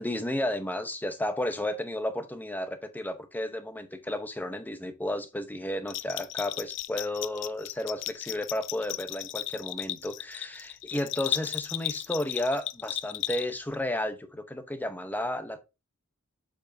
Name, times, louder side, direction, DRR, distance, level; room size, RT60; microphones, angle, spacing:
voice 1, 0.0-15.6, left 1 dB, 10° left, 0.7 m, -33 dB
Bell, 5.9-13.8, left 15 dB, 55° left, 0.3 m, -35 dB
7.4 x 4.9 x 2.6 m
head